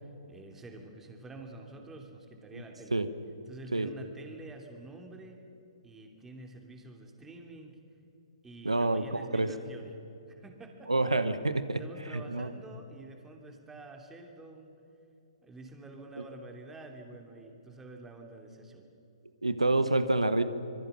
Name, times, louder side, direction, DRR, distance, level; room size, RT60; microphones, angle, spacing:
voice 1, 0.0-3.0 3.5-5.4 5.8-7.8 8.4-10.0 10.3-11.1 11.8-14.8 15.4-18.9, right 2 dB, 10° right, 3 dB, 2.9 m, -48 dB
voice 2, 8.6-9.0 9.3-9.5 10.9-11.8 12.1-12.5 19.4-20.4, right 2 dB, 90° right, 11 dB, 1.3 m, -27 dB
26.0 x 23.0 x 7.0 m, 2.8 s
figure-of-eight pair, 130°, 3 cm